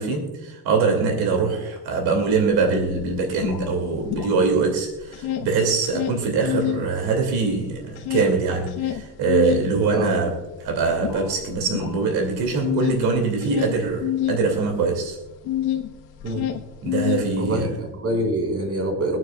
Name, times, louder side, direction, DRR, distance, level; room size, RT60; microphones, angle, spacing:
voice 1, 0.0-15.2 16.8-17.7, right 4 dB, 80° right, 3 dB, 2.6 m, -23 dB
sound 1, 2.5-2.6 2.7-4.7 5.0-6.9 7.2-15.9 16.2-17.7, left 11 dB, 85° left, 1.3 m, -28 dB
voice 2, 17.4-19.2, right 1 dB, 40° right, 2 dB, 4.0 m, -25 dB
24.5 x 9.1 x 2.3 m, 1.1 s
cardioid pair, 100°, 37 cm